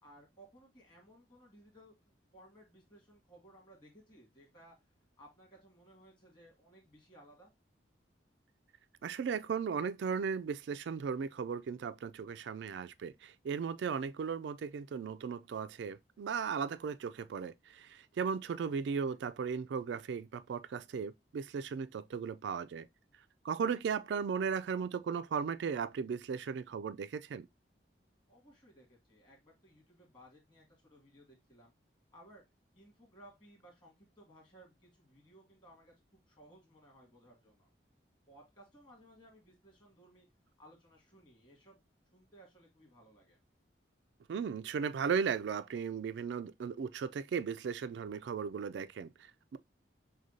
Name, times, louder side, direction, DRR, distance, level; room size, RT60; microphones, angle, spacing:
voice 1, 0.0-4.7 5.2-7.5 19.0-19.2 28.3-31.7 32.1-32.4 32.7-37.7 38.3-40.3 40.6-41.8 42.1-43.4, right 1 dB, 25° left, 2.0 m, -60 dB
voice 2, 9.0-22.9 23.4-27.5 44.3-49.6, right 6 dB, 70° right, 0.3 m, -36 dB
6.2 x 2.2 x 2.6 m
head